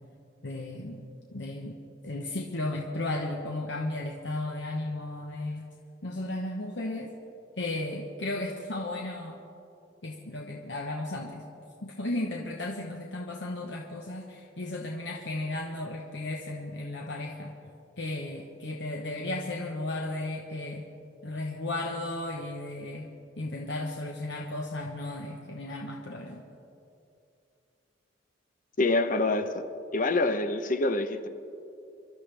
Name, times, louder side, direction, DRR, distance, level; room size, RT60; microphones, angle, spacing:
voice 1, 0.4-1.0 1.3-5.6 6.0-7.1 7.6-9.4 10.0-11.5 11.8-17.5 18.0-20.9 21.2-23.1 23.4-26.4, left 2 dB, 65° left, 0 dB, 1.1 m, -34 dB
voice 2, 28.8-29.6 29.9-31.3, left 2 dB, 45° left, 9 dB, 0.8 m, -26 dB
26.0 x 12.5 x 3.4 m, 2.7 s
head